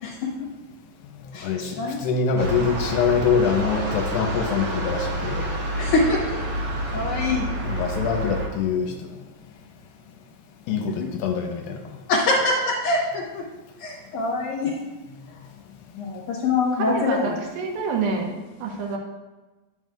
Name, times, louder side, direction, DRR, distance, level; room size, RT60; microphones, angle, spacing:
voice 1, 0.0-0.5 1.3-2.0 5.8-6.5 6.9-7.5 11.0-11.1 12.1-13.5 13.8-14.9 15.9-17.4, left 3 dB, 70° left, -5 dB, 2.2 m, -24 dB
voice 2, 1.4-5.5 7.6-9.0 10.7-11.8, left 6 dB, 85° left, 4 dB, 2.4 m, -24 dB
sound 1, 2.4-8.5, right 1 dB, 60° right, 1.9 m, -28 dB
voice 3, 16.9-19.0, right 4 dB, 85° right, 0 dB, 2.9 m, -28 dB
9.0 x 7.8 x 2.4 m, 1.2 s
omnidirectional pair, 4.2 m